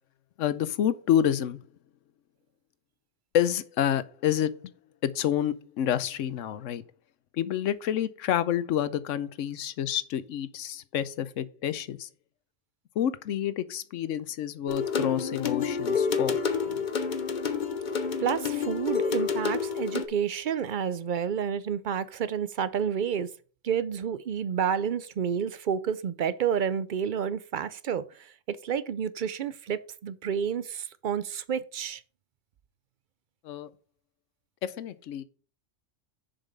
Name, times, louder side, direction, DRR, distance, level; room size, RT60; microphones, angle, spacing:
voice 1, 0.4-1.6 3.3-4.5 5.0-6.8 7.3-12.1 13.0-16.4 16.7-16.8 33.4-33.7 34.6-35.2, left 10 dB, 85° left, 1.0 m, -28 dB
sound 1, 14.7-20.0, left 6 dB, 45° left, 0.9 m, -29 dB
voice 2, 18.2-23.3 23.6-32.0, right 8 dB, 55° right, 0.6 m, -30 dB
7.0 x 5.4 x 5.3 m
omnidirectional pair, 1.3 m